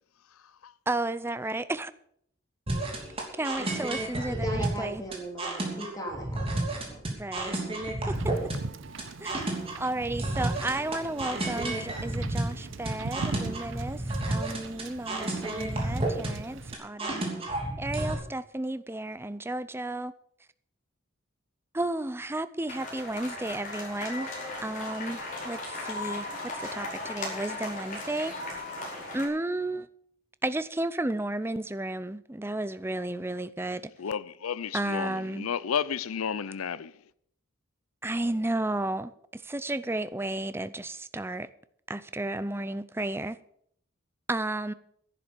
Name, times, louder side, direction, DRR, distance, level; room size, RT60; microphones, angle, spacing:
voice 1, 0.9-1.9 3.4-5.0 7.1-7.6 8.1-8.2 9.2-9.3 9.8-17.3 17.8-20.1 21.7-24.3 24.6-26.3 26.5-28.3 29.1-29.9 30.4-33.8 34.7-35.5 38.0-41.5 41.9-43.4 44.3-44.7, right 2 dB, 10° right, 0.5 m, -33 dB
sound 1, 2.7-18.1, right 1 dB, 25° right, 2.9 m, -31 dB
voice 2, 4.3-7.0, right 1 dB, 15° left, 3.0 m, -37 dB
Wind / Boat Water vehicle, 8.1-16.7, right 3 dB, 65° right, 0.6 m, -40 dB
sound 2, 22.7-29.3, left 2 dB, 35° left, 4.8 m, -37 dB
voice 3, 34.0-36.9, left 7 dB, 90° left, 0.5 m, -32 dB
11.0 x 11.0 x 6.9 m
head